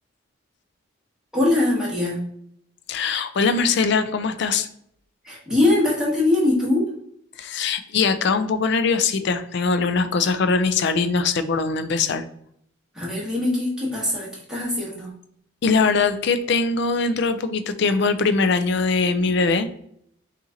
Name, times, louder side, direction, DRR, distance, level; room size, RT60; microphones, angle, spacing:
voice 1, 1.3-2.2 5.2-6.8 12.9-15.1, left 2 dB, 5° right, -6 dB, 1.3 m, -22 dB
voice 2, 2.9-4.7 7.4-12.2 15.6-19.7, left 4 dB, 55° left, 10 dB, 0.4 m, -21 dB
5.6 x 2.5 x 2.8 m, 0.69 s
head